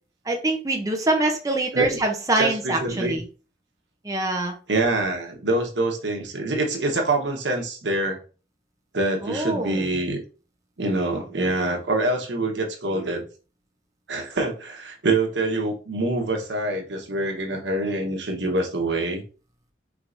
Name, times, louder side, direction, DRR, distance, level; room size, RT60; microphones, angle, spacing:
voice 1, 0.3-3.2 4.0-4.5 9.2-9.8, right 2 dB, 20° right, 2 dB, 0.5 m, -24 dB
voice 2, 2.4-3.2 4.7-8.2 8.9-10.2 10.8-13.2 14.1-19.2, right 2 dB, 90° right, 3 dB, 1.0 m, -25 dB
4.6 x 3.3 x 2.5 m, 0.35 s
head